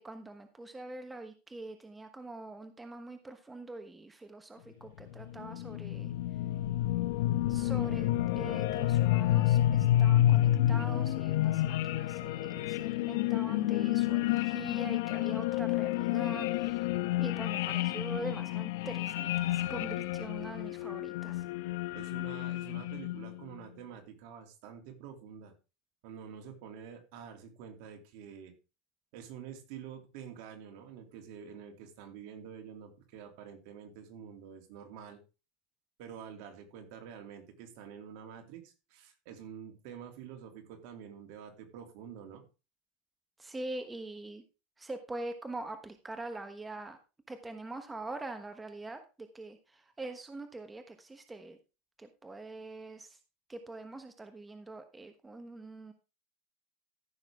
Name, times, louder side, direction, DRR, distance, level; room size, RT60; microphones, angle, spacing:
voice 1, 0.0-6.1 7.5-16.9 17.2-21.5 43.4-44.4 44.8-47.0 47.3-51.6 52.0-53.2 53.5-55.9, right 2 dB, 10° right, 7 dB, 1.2 m, -44 dB
sound 1, 5.0-23.4, left 13 dB, 80° left, 0.8 m, -29 dB
voice 2, 12.4-12.9 21.9-25.5 26.0-28.5 29.1-35.2 36.0-42.4, right 8 dB, 65° right, 4 dB, 2.8 m, -48 dB
14.5 x 6.5 x 3.7 m, 0.31 s
supercardioid pair, 135°, 0 cm